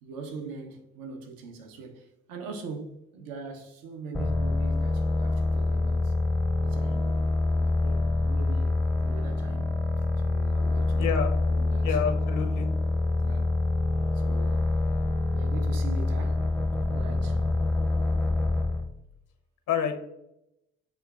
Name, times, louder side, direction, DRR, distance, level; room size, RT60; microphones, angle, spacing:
voice 1, 0.0-6.2 6.6-9.7 10.2-11.2 11.5-12.0 13.2-13.6 14.1-14.7 15.3-16.5 16.9-17.4, right 4 dB, 70° right, 0.8 m, -42 dB
sound 1, 4.1-18.9, left 2 dB, 5° left, 0.5 m, -26 dB
voice 2, 11.0-11.3 11.8-12.7 19.7-20.0, left 8 dB, 60° left, 0.6 m, -28 dB
6.5 x 2.4 x 2.4 m
hypercardioid pair, 50°, 36 cm